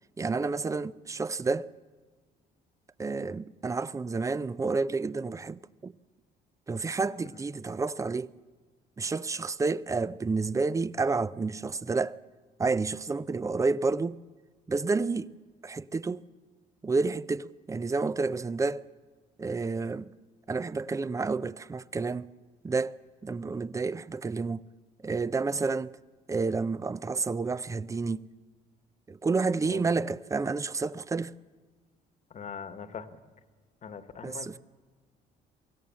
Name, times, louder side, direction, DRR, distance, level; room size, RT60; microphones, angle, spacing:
voice 1, 0.2-1.7 3.0-5.9 6.7-8.3 9.0-12.2 12.6-14.2 14.7-15.3 15.6-16.3 16.8-18.9 19.4-20.1 20.5-22.3 22.6-24.7 25.0-25.9 26.3-28.3 29.1-31.3 34.2-34.6, right 4 dB, 20° right, 0.5 m, -30 dB
voice 2, 32.3-33.1 33.8-34.6, left 7 dB, 45° left, 1.4 m, -41 dB
24.0 x 16.0 x 7.5 m
cardioid pair, 110°, 17 cm